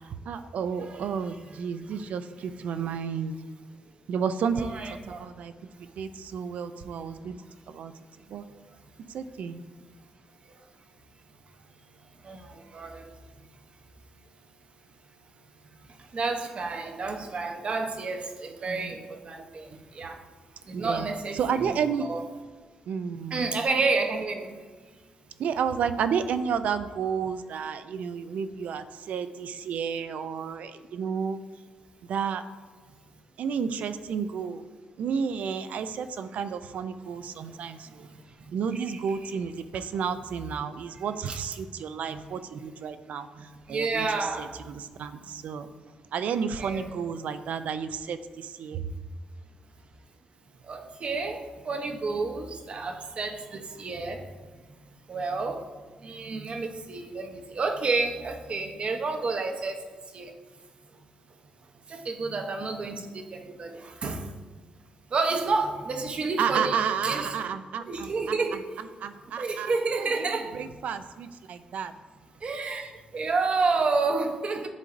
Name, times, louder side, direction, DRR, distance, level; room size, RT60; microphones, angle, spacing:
voice 1, 0.0-3.3 4.1-4.8 5.0-5.5 5.8-7.4 7.7-7.9 8.3-8.5 9.1-9.6 18.7-19.0 20.7-21.1 21.3-22.1 22.9-23.5 25.4-31.4 32.1-32.4 33.4-34.6 35.0-38.1 38.5-44.1 44.4-45.7 46.1-48.9 66.4-68.4 68.8-69.7 70.0-71.9, right 7 dB, 75° right, 0.4 m, -31 dB
voice 2, 4.6-5.2 5.8-5.9 7.2-7.3 8.5-8.8 10.4-10.6 12.2-13.4 15.8-20.3 20.6-21.8 22.1-22.2 23.3-24.7 37.4-39.3 41.3-41.4 42.1-42.2 43.4-44.6 46.6-47.0 50.6-54.3 55.1-55.7 56.0-60.3 61.9-64.4 65.1-67.3 67.9-68.7 69.3-70.7 72.4-74.7, right 3 dB, 50° right, 0.7 m, -30 dB
10.5 x 3.9 x 2.6 m
cardioid pair, 80°, 3 cm